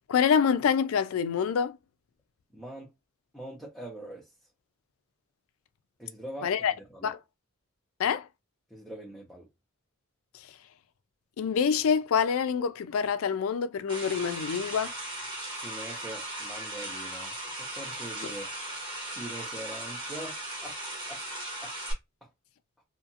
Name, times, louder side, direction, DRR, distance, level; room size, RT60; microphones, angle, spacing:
voice 1, 0.1-1.8 6.4-6.7 7.0-7.2 8.0-8.3 11.4-14.9, left 7 dB, 85° left, 0.4 m, -26 dB
voice 2, 2.5-2.9 3.3-4.3 6.0-6.6 6.9-7.1 8.7-9.5 15.5-17.3 17.6-18.5 19.1-20.8 21.1-21.2 21.6-21.7, right 1 dB, ahead, 0.7 m, -43 dB
sound 1, 13.9-21.9, right 1 dB, 20° right, 1.1 m, -37 dB
2.8 x 2.4 x 2.6 m
head